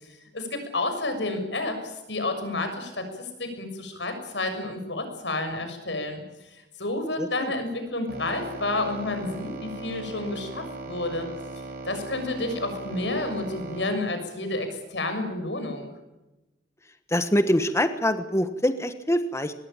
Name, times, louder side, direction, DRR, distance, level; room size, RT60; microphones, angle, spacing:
voice 1, 0.3-6.2 6.5-11.3 11.8-15.9, left 2 dB, 85° left, 7 dB, 6.6 m, -30 dB
voice 2, 7.2-7.5 17.1-19.5, left 1 dB, 15° left, 9 dB, 1.3 m, -24 dB
sound 1, 8.1-13.9, right 2 dB, 60° right, 6.5 m, -38 dB
24.0 x 20.5 x 9.0 m, 1.0 s
head